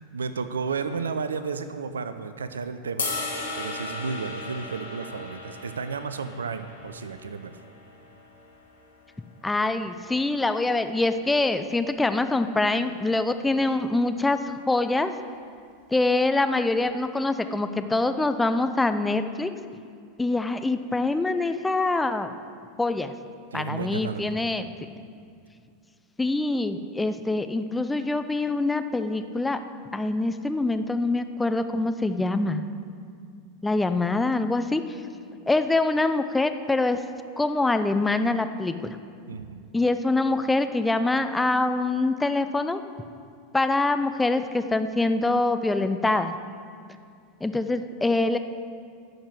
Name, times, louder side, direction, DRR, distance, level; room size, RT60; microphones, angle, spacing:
voice 1, 0.1-3.1 3.6-7.5 23.5-24.4 39.3-39.6, right 5 dB, 80° right, 11 dB, 0.5 m, -32 dB
sound 1, 3.0-9.2, left 3 dB, 85° left, 2.0 m, -36 dB
voice 2, 9.4-14.4 14.7-15.1 15.9-19.5 20.2-22.3 22.8-23.1 23.5-24.7 26.2-29.6 29.9-32.6 33.6-34.8 35.5-37.0 37.4-38.8 39.7-42.8 43.5-46.3 47.4-48.4, left 2 dB, 10° left, 9 dB, 0.6 m, -24 dB
11.0 x 6.7 x 7.7 m, 2.3 s
hypercardioid pair, 90°, 0 cm